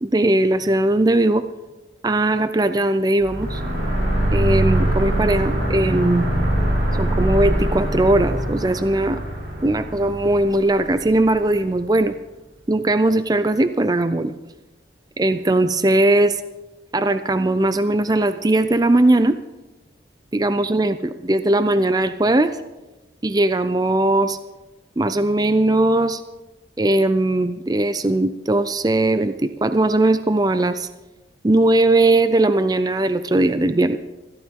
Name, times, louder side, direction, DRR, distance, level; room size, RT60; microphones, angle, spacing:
voice 1, 0.0-1.4 2.0-3.6 4.3-6.3 7.0-9.2 9.6-12.2 12.7-14.3 15.2-16.4 16.9-19.4 20.3-22.6 23.2-24.4 25.0-26.2 26.8-30.9 31.4-34.0, right 2 dB, 20° right, 11 dB, 0.5 m, -19 dB
sound 1, 3.2-11.6, right 1 dB, 75° right, 6.3 m, -23 dB
21.5 x 15.0 x 3.7 m, 1.1 s
head